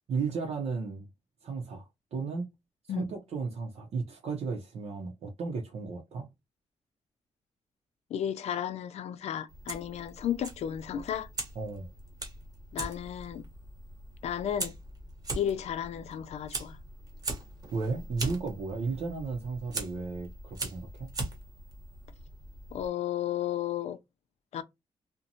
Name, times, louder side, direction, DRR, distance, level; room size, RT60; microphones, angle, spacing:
voice 1, 0.1-1.1 1.4-2.5 2.9-6.3 11.6-11.9 17.7-21.1, right 4 dB, 75° right, 0.6 m, -34 dB
voice 2, 8.1-11.3 12.7-13.4 14.2-14.8 15.3-16.8 22.7-24.0 24.5-24.6, left 10 dB, 80° left, 0.4 m, -33 dB
Fire, 9.5-22.9, right 2 dB, 35° right, 0.9 m, -41 dB
2.6 x 2.1 x 2.7 m
wide cardioid pair, 150°, 11 cm